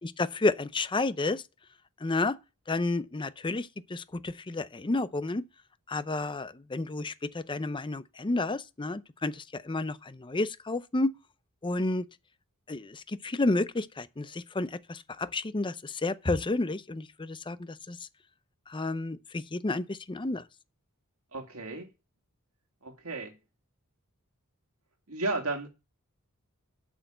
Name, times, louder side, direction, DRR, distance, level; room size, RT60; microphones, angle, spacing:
voice 1, 0.0-1.4 2.0-2.3 2.7-5.4 5.9-11.1 11.6-12.0 12.7-18.0 18.7-20.4, left 2 dB, 20° left, 0.6 m, -31 dB
voice 2, 21.3-21.9 22.8-23.4 25.1-25.7, right 2 dB, 70° right, 2.3 m, -33 dB
8.0 x 6.4 x 7.8 m
head